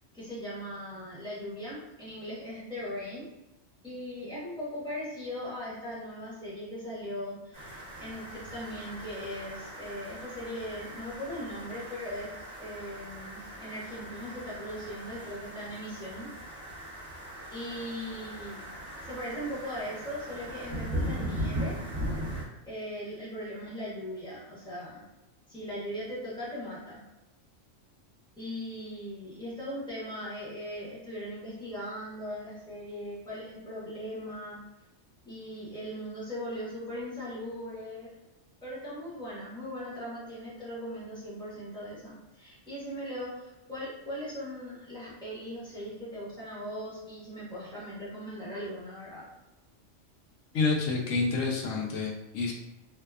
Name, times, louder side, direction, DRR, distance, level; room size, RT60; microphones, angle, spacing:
voice 1, 0.1-3.2 3.8-16.3 17.5-18.6 19.0-21.7 22.7-25.0 25.5-27.0 28.4-34.6 35.2-38.1 38.6-49.2, equal, 5° left, -9 dB, 0.8 m, -39 dB
sound 1, 7.5-22.4, equal, 35° right, 0.9 m, -39 dB
voice 2, 50.5-52.5, left 3 dB, 90° left, -1 dB, 1.0 m, -28 dB
2.7 x 2.2 x 2.3 m, 0.95 s
omnidirectional pair, 1.3 m